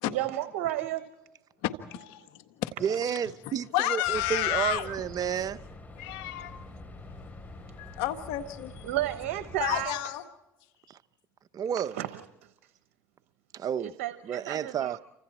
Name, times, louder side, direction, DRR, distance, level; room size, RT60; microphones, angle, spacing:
voice 1, 0.1-1.1 8.8-10.0 12.0-12.2 13.8-15.0, right 14 dB, 85° right, 1.0 m, -32 dB
voice 2, 1.6-2.7 3.4-4.9 6.0-6.6 7.8-8.8 9.6-10.2, left 14 dB, 80° left, 1.7 m, -31 dB
voice 3, 2.8-5.6 10.9-11.0 11.5-12.0 13.5-13.9 14.2-15.0, right 8 dB, 50° right, 0.8 m, -31 dB
sound 1, 4.0-9.9, left 2 dB, 20° left, 7.5 m, -46 dB
30.0 x 26.0 x 4.3 m
supercardioid pair, 85°, 8 cm